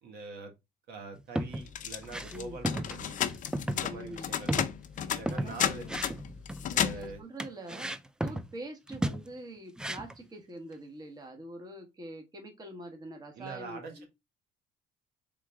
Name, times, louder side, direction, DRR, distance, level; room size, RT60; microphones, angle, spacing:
voice 1, 0.0-0.5 0.9-3.2 3.7-4.6 5.1-5.9 6.7-7.2 8.2-8.4 13.3-14.1, right 3 dB, 75° right, 1.6 m, -44 dB
sound 1, 1.1-1.7 2.0-2.4 2.6-3.0 3.3-3.8 4.1-4.2 4.5-5.5 5.8-6.6 7.4-8.5 8.9-9.3 9.8-10.2, right 1 dB, 5° right, 0.3 m, -34 dB
sound 2, 1.7-7.2, left 9 dB, 50° left, 0.6 m, -33 dB
voice 2, 3.9-4.3 5.3-5.8 6.7-7.9 8.2-14.1, right 1 dB, 25° right, 1.3 m, -44 dB
3.8 x 3.8 x 3.4 m
cardioid pair, 110°, 17 cm